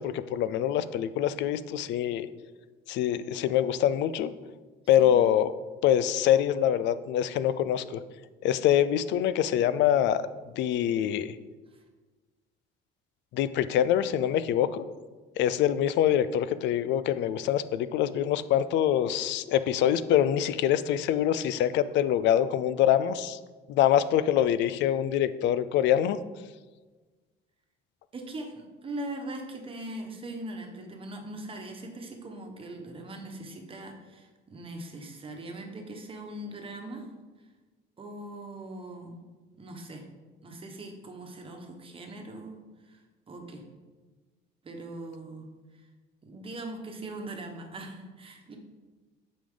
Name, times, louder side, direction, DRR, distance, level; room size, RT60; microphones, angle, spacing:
voice 1, 0.0-2.3 2.9-4.3 4.9-5.5 5.8-8.0 8.4-10.2 10.5-11.3 13.3-14.8 15.4-23.4 23.7-26.2, left 10 dB, 70° left, 14 dB, 0.4 m, -25 dB
voice 2, 5.0-5.3 11.7-11.8 28.1-37.0 38.0-39.2 39.6-40.0 40.4-42.6 42.8-43.6 44.6-45.5 45.7-45.9 46.2-48.6, right 1 dB, 30° right, 2 dB, 1.2 m, -41 dB
8.5 x 5.2 x 3.8 m, 1.3 s
cardioid pair, 125°, 19 cm